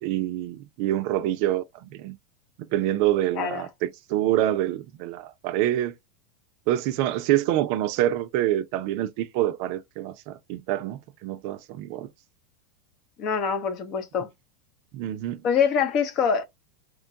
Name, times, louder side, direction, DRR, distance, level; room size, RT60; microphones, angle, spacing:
voice 1, 0.0-2.2 2.7-5.9 6.7-12.1 14.9-15.4, right 13 dB, 60° right, 0.4 m, -26 dB
voice 2, 3.3-3.7 13.2-14.3 15.4-16.4, left 6 dB, 45° left, 0.8 m, -24 dB
3.0 x 2.2 x 2.7 m
hypercardioid pair, 105°, 0 cm